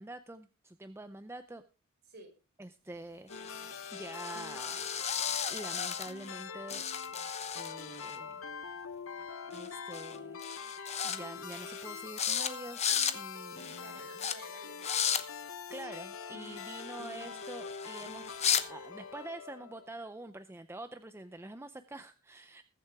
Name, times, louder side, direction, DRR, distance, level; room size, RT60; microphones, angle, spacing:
voice 1, 0.0-1.6 2.6-6.8 7.5-8.4 9.4-10.4 11.0-14.0 15.7-22.6, right 2 dB, 10° right, 10 dB, 0.5 m, -46 dB
sound 1, 3.3-19.9, left 5 dB, 65° left, 1.0 m, -44 dB
sound 2, 3.3-6.4 6.7-8.2 9.5-9.7 9.9-10.2 10.4-11.2 11.5-11.9 12.2-12.5 12.7-13.2 13.6-13.8 14.2-14.3 14.8-15.2 16.4-18.6, left 8 dB, 30° left, 0.9 m, -35 dB
voice 2, 13.8-15.4, right 2 dB, 50° right, 3 dB, 5.1 m, -53 dB
21.0 x 7.8 x 3.4 m, 0.31 s
head